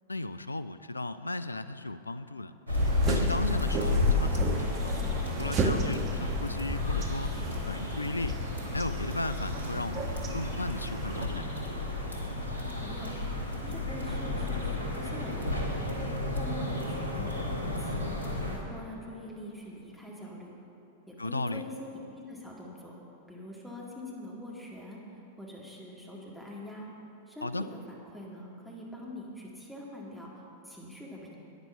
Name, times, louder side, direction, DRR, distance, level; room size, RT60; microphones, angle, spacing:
voice 1, 0.1-2.5 3.1-5.0 5.4-7.3 7.7-8.4 8.7-11.6 21.2-21.6 27.4-27.6, left 2 dB, 80° left, 13 dB, 0.3 m, -35 dB
sound 1, 2.7-11.3, right 3 dB, 30° right, 1.0 m, -35 dB
sound 2, 2.7-18.6, left 2 dB, 85° right, 1.5 m, -32 dB
voice 2, 12.8-15.8 16.3-18.1 18.5-20.5 21.1-22.9 23.3-25.0 25.4-26.9 27.3-30.3 30.6-31.4, left 1 dB, ahead, -4 dB, 2.1 m, -44 dB
10.0 x 9.3 x 5.6 m, 3.0 s
figure-of-eight pair, 95°, 0 cm